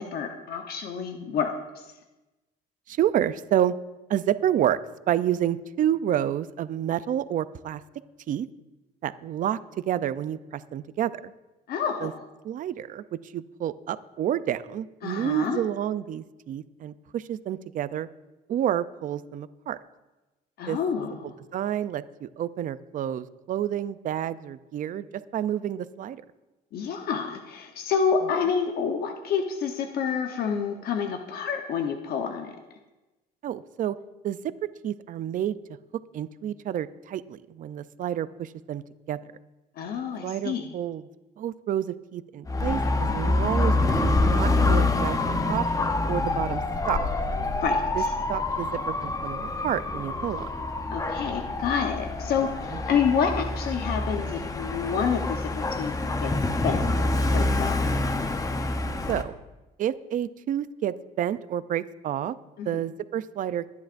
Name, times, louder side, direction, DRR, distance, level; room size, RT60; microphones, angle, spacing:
voice 1, 0.0-1.5 11.7-12.2 15.0-15.6 20.6-21.3 26.7-32.5 39.8-40.7 47.6-48.1 50.9-55.9 56.2-57.8 62.6-62.8, left 6 dB, 65° left, 4 dB, 1.0 m, -28 dB
voice 2, 2.9-3.8 4.1-4.8 5.1-7.8 8.3-8.5 9.0-9.6 9.9-11.3 12.0-12.1 12.4-13.0 13.3-18.1 18.5-19.8 20.7-20.8 21.5-25.1 25.3-26.2 33.4-34.0 34.2-35.6 36.1-39.2 40.2-41.0 41.4-45.2 45.5-45.6 46.1-46.6 46.9-47.0 48.0-48.1 48.3-50.5 52.7-52.8 59.1-59.3 59.8-62.3 62.7-63.6, right 10 dB, 50° right, 15 dB, 0.5 m, -29 dB
Dog / Motorcycle, 42.5-59.2, left 2 dB, 20° left, 0.8 m, -26 dB
21.5 x 10.5 x 2.6 m, 1.1 s
cardioid pair, 110°, 17 cm